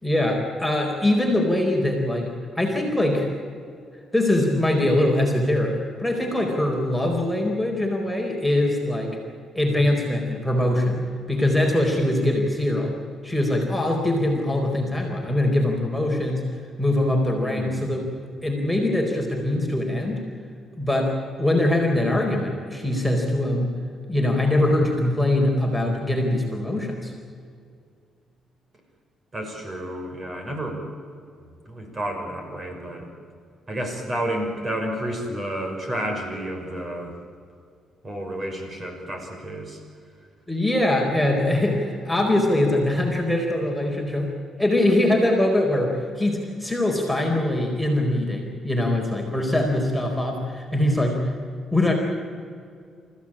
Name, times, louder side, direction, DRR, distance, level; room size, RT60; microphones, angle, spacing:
voice 1, 0.0-2.3 2.6-3.3 4.1-9.2 9.6-12.9 13.2-16.5 16.8-18.1 18.4-20.2 20.8-23.7 24.1-27.1 40.5-44.3 44.6-51.3 51.7-51.9, left 1 dB, ahead, 0 dB, 4.3 m, -22 dB
voice 2, 17.4-18.0 29.3-30.8 31.4-33.1 33.7-37.1 38.0-39.8, right 1 dB, 30° right, 3 dB, 6.1 m, -31 dB
28.0 x 15.5 x 8.8 m, 2.3 s
cardioid pair, 90°, 0 cm